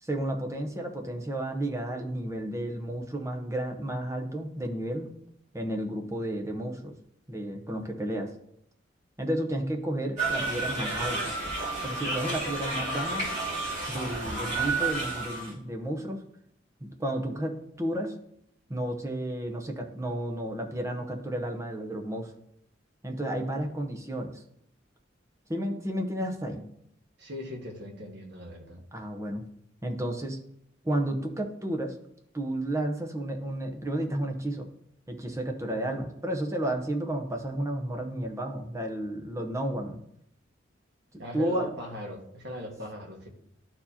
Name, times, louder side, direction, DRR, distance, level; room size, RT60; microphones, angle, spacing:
voice 1, 0.0-5.1 5.5-6.9 7.3-8.3 9.2-11.3 11.8-13.3 13.9-16.2 16.8-18.1 18.7-22.3 23.0-24.4 25.5-26.6 28.9-29.4 29.8-30.4 30.8-32.0 32.3-34.7 35.1-40.0 41.3-41.7, right 1 dB, 15° right, 3 dB, 0.8 m, -32 dB
sound 1, 10.2-15.5, right 3 dB, 40° right, 3.0 m, -31 dB
voice 2, 27.2-28.8 41.2-43.3, left 1 dB, 60° right, 1 dB, 1.6 m, -39 dB
12.0 x 4.6 x 2.8 m, 0.73 s
head